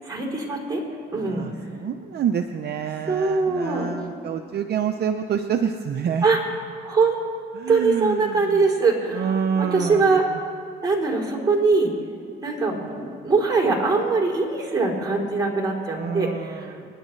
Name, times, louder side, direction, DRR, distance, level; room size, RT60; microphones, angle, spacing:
voice 1, 0.0-0.8 1.1-1.4 3.1-3.9 6.2-6.4 6.8-7.2 7.7-10.2 10.8-11.9 12.4-16.7, right 4 dB, 20° right, -2 dB, 3.5 m, -22 dB
voice 2, 1.2-6.3 7.5-8.6 9.1-10.4 12.7-13.3 15.9-16.9, right 7 dB, 55° right, 5 dB, 0.7 m, -28 dB
29.0 x 10.0 x 3.2 m, 2.4 s
cardioid pair, 90°, 20 cm